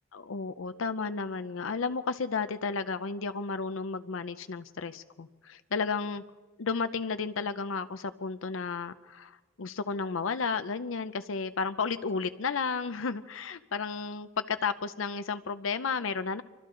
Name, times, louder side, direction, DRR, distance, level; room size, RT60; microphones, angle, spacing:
voice 1, 0.1-6.2 6.6-16.4, left 5 dB, 70° left, 11 dB, 0.6 m, -33 dB
28.0 x 24.5 x 3.8 m, 1.3 s
head